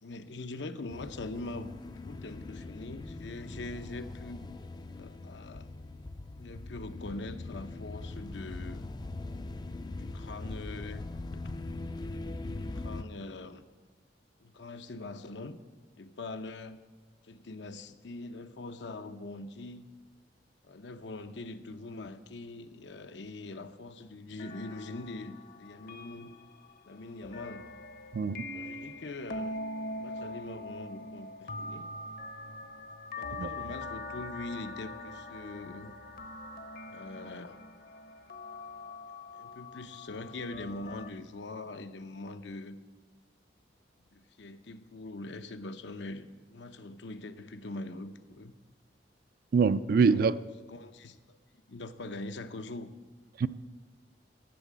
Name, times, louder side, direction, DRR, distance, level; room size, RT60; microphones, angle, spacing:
voice 1, 0.0-4.5 5.0-5.7 6.4-8.9 9.9-11.0 11.3-11.7 12.5-13.7 14.4-15.6 16.0-16.8 17.2-19.8 20.6-26.3 26.9-27.7 28.5-31.9 33.2-35.9 36.9-37.6 39.4-42.8 44.1-48.5 50.0-50.2 50.7-51.4 51.7-52.9, left 2 dB, 80° left, 10 dB, 0.7 m, -43 dB
sound 1, 0.9-13.0, left 2 dB, 25° left, 0.3 m, -41 dB
sound 2, 24.4-41.1, left 2 dB, 55° left, 0.8 m, -43 dB
voice 2, 28.1-28.4 33.4-33.5 49.5-50.4 53.4-53.5, right 5 dB, 55° right, 15 dB, 0.4 m, -24 dB
12.0 x 7.4 x 7.3 m, 1.3 s
head